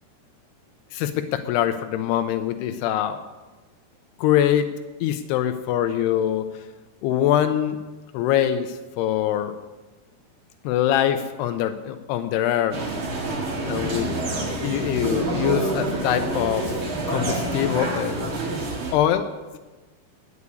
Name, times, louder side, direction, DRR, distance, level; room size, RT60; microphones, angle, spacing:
voice 1, 0.9-3.2 4.2-4.7 5.0-6.5 7.0-7.8 8.1-9.6 10.6-12.8 13.6-14.1 14.6-16.7 17.1-18.5 18.9-19.3, left 11 dB, 85° left, 8 dB, 2.6 m, -23 dB
sound 1, 12.7-18.9, right 2 dB, 40° right, 2.2 m, -27 dB
9.5 x 8.3 x 9.7 m, 1.2 s
omnidirectional pair, 4.7 m